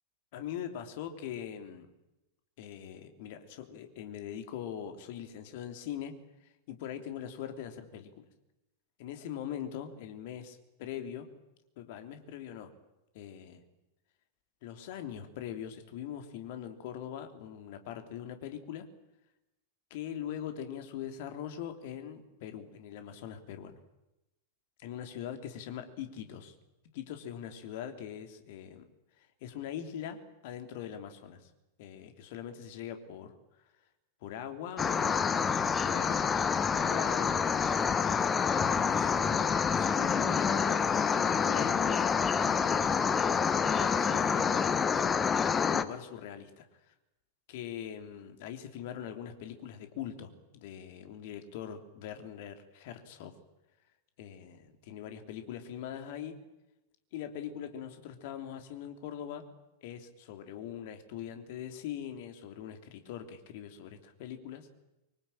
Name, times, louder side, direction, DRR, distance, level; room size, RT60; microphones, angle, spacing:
voice 1, 0.3-1.9 2.6-6.1 6.7-8.3 9.0-11.3 11.8-12.7 13.1-13.6 14.6-18.9 19.9-23.8 24.8-26.5 26.9-28.8 29.2-31.5 31.8-33.3 34.2-36.3 36.6-38.1 38.4-40.8 41.1-43.0 43.4-44.7 45.7-46.9 47.5-53.3 54.2-56.4 57.1-59.5 59.8-64.7, left 9 dB, 50° left, 7 dB, 3.3 m, -42 dB
sound 1, 34.8-45.8, left 6 dB, 20° left, 1.3 m, -27 dB
24.5 x 24.5 x 9.0 m, 0.94 s
figure-of-eight pair, 90°, 0 cm